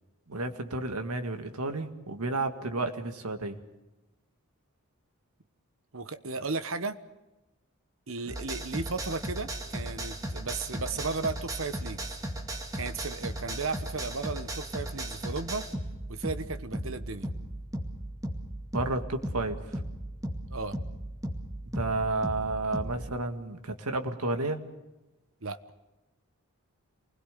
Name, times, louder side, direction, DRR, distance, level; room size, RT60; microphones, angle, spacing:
voice 1, 0.3-3.6 18.7-19.6 21.7-24.6, right 2 dB, 90° right, 7 dB, 2.0 m, -31 dB
voice 2, 5.9-7.0 8.1-12.2 12.7-15.7 16.1-17.3 20.5-20.8 25.4-25.6, right 4 dB, 65° right, 11 dB, 1.2 m, -35 dB
sound 1, 8.3-23.0, right 1 dB, 15° right, 2.3 m, -36 dB
27.5 x 20.5 x 6.8 m, 1.0 s
head